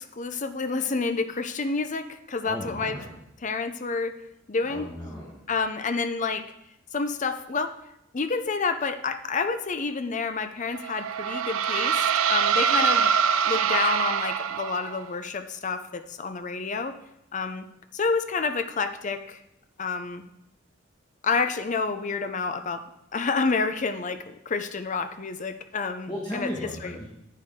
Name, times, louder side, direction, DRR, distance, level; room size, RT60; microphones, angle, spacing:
voice 1, 0.0-3.0 3.4-4.1 4.5-4.9 5.5-6.5 6.9-7.8 8.1-13.1 13.5-17.0 17.3-17.7 17.9-19.4 19.8-20.2 21.2-22.9 23.1-26.5 26.8-26.9, left 4 dB, 35° left, 10 dB, 0.5 m, -29 dB
voice 2, 2.4-3.1 4.7-5.4 26.1-27.1, equal, 20° left, -5 dB, 1.4 m, -35 dB
sound 1, 10.7-15.0, right 7 dB, 90° right, 0.5 m, -24 dB
9.9 x 8.3 x 3.7 m, 0.83 s
head